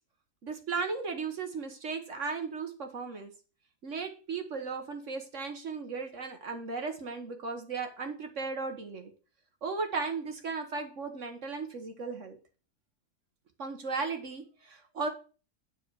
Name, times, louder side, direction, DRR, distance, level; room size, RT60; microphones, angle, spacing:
voice 1, 0.4-3.3 3.8-9.1 9.6-12.4 13.6-15.1, right 4 dB, 55° right, 5 dB, 1.5 m, -36 dB
9.2 x 4.6 x 6.4 m, 0.37 s
omnidirectional pair, 1.6 m